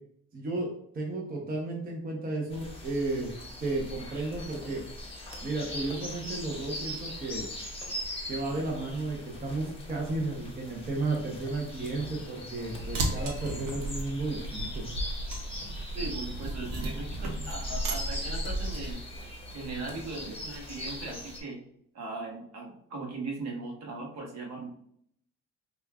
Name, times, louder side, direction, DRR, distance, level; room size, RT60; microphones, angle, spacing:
voice 1, 0.3-0.7 0.9-3.3 3.6-4.8 5.4-7.5 8.3-14.9, right 2 dB, 25° right, -1 dB, 0.8 m, -33 dB
sound 1, 2.5-21.4, left 1 dB, 15° left, 1.0 m, -41 dB
sound 2, 12.7-18.9, right 1 dB, 80° right, 0.8 m, -34 dB
voice 2, 15.9-21.6 21.9-24.7, right 3 dB, 50° right, 0 dB, 1.1 m, -39 dB
5.0 x 2.3 x 2.3 m, 0.69 s
cardioid pair, 105°, 33 cm